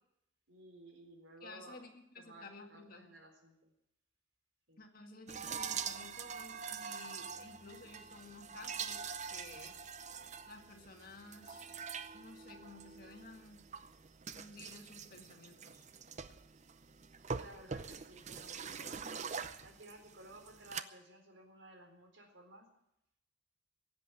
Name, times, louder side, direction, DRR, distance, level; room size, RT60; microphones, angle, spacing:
voice 1, 0.5-1.9 2.2-3.7 4.7-4.8 17.3-19.1 19.6-22.7, right 1 dB, 75° right, 3 dB, 3.9 m, -56 dB
voice 2, 1.4-3.1 4.8-9.8 10.5-11.7 12.1-13.6 14.3-15.8, left 3 dB, 45° left, 4 dB, 2.0 m, -54 dB
sound 1, 5.3-20.8, right 6 dB, 35° right, 0.7 m, -45 dB
16.5 x 8.2 x 9.9 m, 0.82 s
head